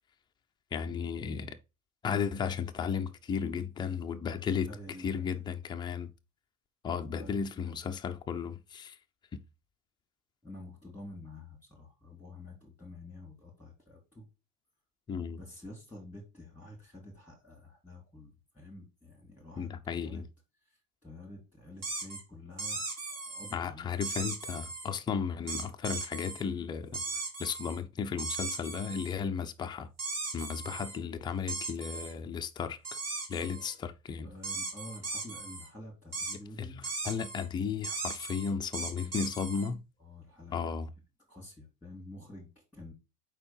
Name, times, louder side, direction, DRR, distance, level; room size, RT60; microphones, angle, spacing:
voice 1, 0.7-1.6 2.0-4.7 5.0-6.1 6.8-9.0 15.1-15.4 19.6-20.3 23.5-27.0 27.4-29.9 30.3-32.8 33.3-34.3 36.6-39.8 40.5-40.9, left 6 dB, 10° left, 0.3 m, -34 dB
voice 2, 4.7-5.4 7.2-7.7 10.4-14.3 15.4-20.2 20.7-23.9 33.5-33.7 34.2-36.8 38.9-39.3 40.0-40.6 41.3-42.9, left 1 dB, 5° right, 2.3 m, -49 dB
sound 1, 21.8-22.2 22.6-23.5 24.0-24.9 25.5-26.4 26.9-27.8 28.2-29.1 30.0-31.0 31.5-32.1 32.8-33.7 34.4-35.7 36.1-36.4 36.8-37.5 37.8-39.7, right 3 dB, 35° right, 2.5 m, -38 dB
4.7 x 4.3 x 5.4 m
hypercardioid pair, 110°, 45 cm